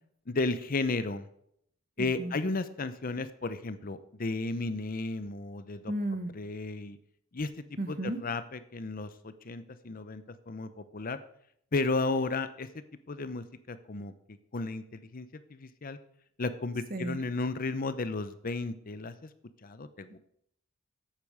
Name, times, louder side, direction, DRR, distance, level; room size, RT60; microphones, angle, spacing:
voice 1, 0.3-1.3 2.0-5.8 6.3-7.0 7.3-7.5 7.9-11.2 11.7-12.7 13.1-14.1 14.5-16.0 16.4-19.1 19.6-20.2, left 3 dB, 45° left, 12 dB, 0.7 m, -33 dB
voice 2, 2.0-2.3 5.9-6.3 7.8-8.2 16.9-17.2, right 1 dB, 45° right, 9 dB, 1.3 m, -33 dB
8.7 x 8.4 x 6.4 m, 0.69 s
head